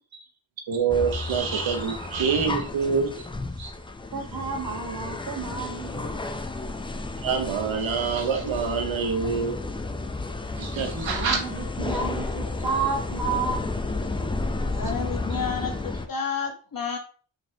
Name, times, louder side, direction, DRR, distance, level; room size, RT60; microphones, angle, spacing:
voice 1, 0.7-3.1 3.6-3.7 7.2-9.6 10.6-11.4, right 6 dB, 85° right, 5 dB, 0.8 m, -26 dB
sound 1, 0.9-16.1, left 2 dB, 15° left, 0.3 m, -32 dB
voice 2, 4.1-6.2 10.9-13.7, right 4 dB, 50° right, 2 dB, 1.2 m, -31 dB
voice 3, 14.6-17.0, left 6 dB, 45° left, 3 dB, 1.1 m, -31 dB
3.9 x 3.6 x 2.7 m, 0.41 s
cardioid pair, 55°, 46 cm